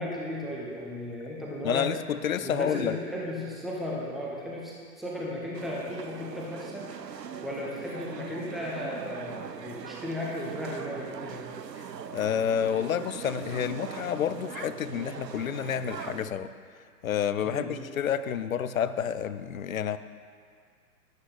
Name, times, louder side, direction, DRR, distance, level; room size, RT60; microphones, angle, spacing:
voice 1, 0.0-1.9 2.4-11.4 17.4-17.7, left 1 dB, ahead, -4 dB, 0.6 m, -35 dB
voice 2, 1.6-2.9 11.8-11.9 12.1-16.5 17.0-20.0, left 8 dB, 60° left, 13 dB, 0.6 m, -29 dB
sound 1, 5.5-16.3, right 7 dB, 85° right, 0.6 m, -41 dB
13.0 x 11.0 x 3.3 m, 2.1 s
figure-of-eight pair, 115°, 48 cm